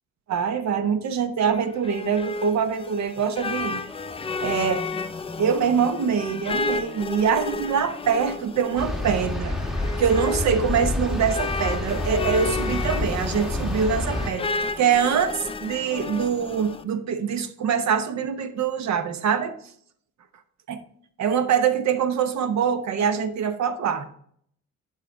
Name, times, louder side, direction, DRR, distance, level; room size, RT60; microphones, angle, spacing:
voice 1, 0.3-3.8 4.4-4.8 5.4-9.6 10.0-19.6 20.7-20.8 21.2-24.1, right 7 dB, 65° right, 10 dB, 0.9 m, -24 dB
sound 1, 1.5-16.8, left 3 dB, 20° left, 0.4 m, -32 dB
sound 2, 8.8-14.3, left 2 dB, ahead, 1.2 m, -28 dB
11.0 x 4.2 x 3.4 m, 0.65 s
cardioid pair, 90°, 30 cm